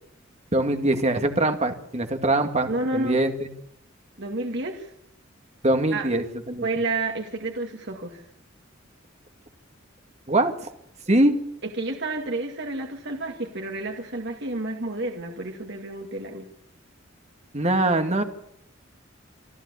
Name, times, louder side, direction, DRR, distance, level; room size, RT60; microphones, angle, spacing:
voice 1, 0.5-3.5 5.6-6.7 10.3-10.5 11.1-11.4 17.5-18.2, right 1 dB, 35° right, 6 dB, 2.2 m, -22 dB
voice 2, 2.7-3.2 4.2-4.9 5.9-6.1 6.6-8.2 11.6-16.5, right 2 dB, 60° right, 2 dB, 2.4 m, -30 dB
25.5 x 13.5 x 8.5 m, 0.74 s
head